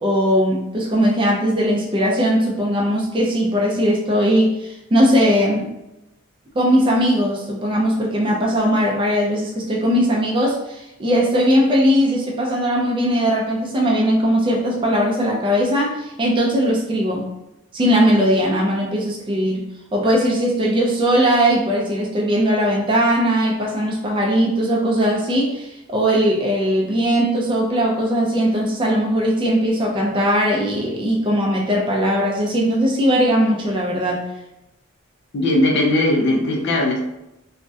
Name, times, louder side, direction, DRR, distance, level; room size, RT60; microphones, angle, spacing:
voice 1, 0.0-5.7 6.5-17.3 17.7-19.6 19.9-34.2, equal, 25° right, -2 dB, 0.3 m, -19 dB
voice 2, 35.3-37.0, left 1 dB, 50° left, 0 dB, 0.4 m, -18 dB
2.3 x 2.0 x 2.6 m, 0.93 s
head